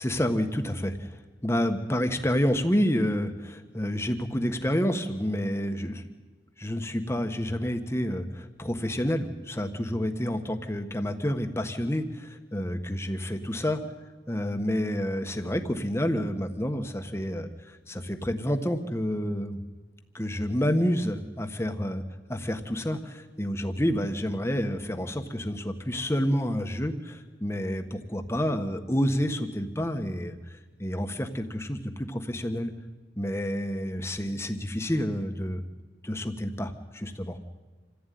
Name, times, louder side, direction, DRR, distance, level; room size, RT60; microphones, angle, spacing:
voice 1, 0.0-6.1 6.6-13.8 14.3-19.6 20.1-22.0 22.3-32.7 33.2-35.6 36.0-37.4, equal, 15° left, 6 dB, 1.4 m, -29 dB
27.0 x 15.5 x 9.4 m, 1.3 s
head